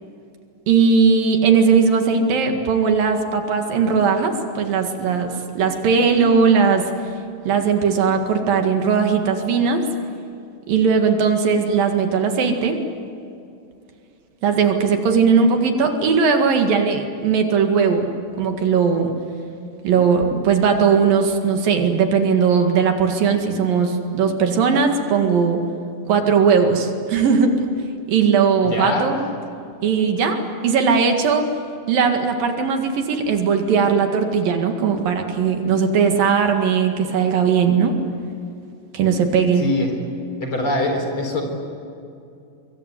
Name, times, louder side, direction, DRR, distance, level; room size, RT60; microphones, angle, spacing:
voice 1, 0.7-6.8 7.4-9.8 10.7-12.8 14.4-18.1 18.4-19.1 19.8-25.6 26.1-27.6 28.1-29.2 29.8-30.4 30.6-31.5 31.9-38.0 38.9-39.6, right 5 dB, 70° right, 5 dB, 3.7 m, -18 dB
voice 2, 28.6-29.1 39.6-40.0 40.4-41.4, left 2 dB, 35° left, 3 dB, 4.7 m, -23 dB
24.5 x 23.0 x 9.7 m, 2.5 s
omnidirectional pair, 4.2 m